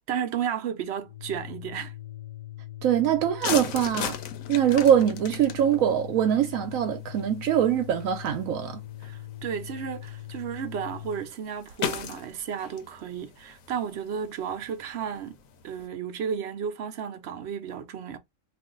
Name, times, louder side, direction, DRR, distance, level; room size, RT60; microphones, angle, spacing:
voice 1, 0.1-1.9 9.0-15.3 15.6-18.2, right 8 dB, 65° right, 0.7 m, -33 dB
Organ, 1.0-11.3, left 14 dB, 55° left, 0.5 m, -41 dB
voice 2, 2.8-4.2 4.5-8.8, right 10 dB, 85° right, 1.0 m, -23 dB
sound 1, 3.4-15.9, left 8 dB, 85° left, 1.0 m, -39 dB
2.5 x 2.4 x 3.7 m
omnidirectional pair, 1.4 m